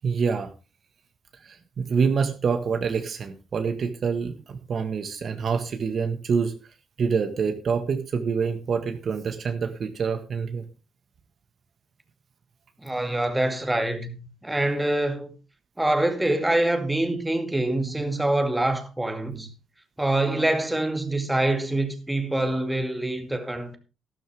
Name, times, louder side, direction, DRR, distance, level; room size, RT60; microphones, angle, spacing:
voice 1, 0.0-0.5 1.4-6.5 7.0-10.6, right 5 dB, 50° right, 1.6 m, -26 dB
voice 2, 12.8-15.3 15.8-19.5 20.0-23.8, right 1 dB, 10° right, 2.3 m, -25 dB
12.5 x 12.5 x 3.5 m
cardioid pair, 90°, 0 cm